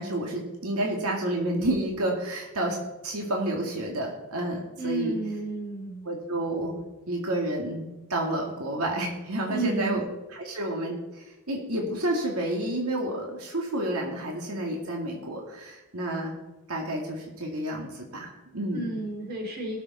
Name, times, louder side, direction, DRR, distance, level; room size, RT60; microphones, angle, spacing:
voice 1, 0.0-2.8 3.0-5.2 6.0-10.0 10.3-16.3 16.7-19.0, right 1 dB, 85° right, 0 dB, 2.3 m, -30 dB
voice 2, 4.8-6.2 9.5-10.1 18.7-19.8, right 2 dB, 45° right, 0 dB, 3.1 m, -32 dB
20.5 x 7.0 x 4.2 m, 1.1 s
head